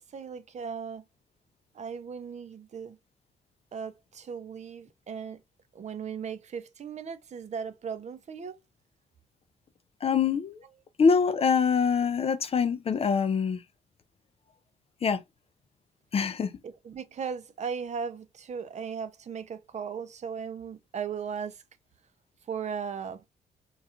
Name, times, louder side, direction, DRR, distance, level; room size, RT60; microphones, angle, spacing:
voice 1, 0.1-1.0 1.8-3.0 3.7-5.4 5.7-8.6 16.6-21.6 22.5-23.3, right 6 dB, 40° right, 0.4 m, -37 dB
voice 2, 10.0-10.6 11.0-13.6 15.0-15.2 16.1-16.5, left 6 dB, 35° left, 0.4 m, -24 dB
2.4 x 2.3 x 2.7 m
supercardioid pair, 50°, 17 cm